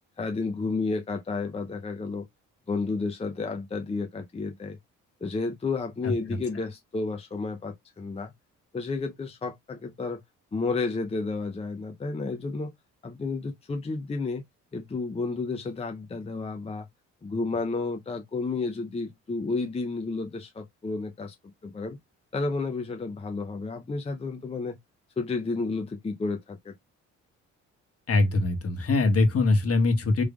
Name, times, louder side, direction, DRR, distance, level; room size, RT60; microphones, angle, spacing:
voice 1, 0.2-2.3 2.7-4.8 5.2-8.3 8.7-10.2 10.5-12.7 13.0-14.4 14.7-16.9 17.2-21.4 21.6-22.0 22.3-24.8 25.2-26.8, left 3 dB, 20° left, 0.6 m, -31 dB
voice 2, 28.1-30.2, left 3 dB, 50° left, 1.5 m, -22 dB
3.6 x 3.2 x 2.3 m
cardioid pair, 90°, 30 cm